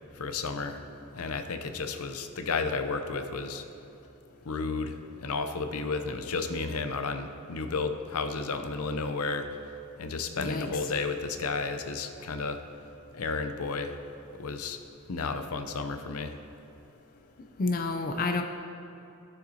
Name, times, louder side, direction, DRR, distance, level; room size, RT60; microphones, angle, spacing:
voice 1, 0.1-0.8 1.1-3.6 4.4-9.5 10.0-12.6 13.1-14.0 14.4-14.8 15.1-16.4, left 4 dB, 80° left, 8 dB, 0.6 m, -32 dB
voice 2, 10.4-10.7 17.6-18.4, left 3 dB, 40° left, 5 dB, 0.4 m, -29 dB
16.0 x 6.6 x 2.8 m, 2.8 s
head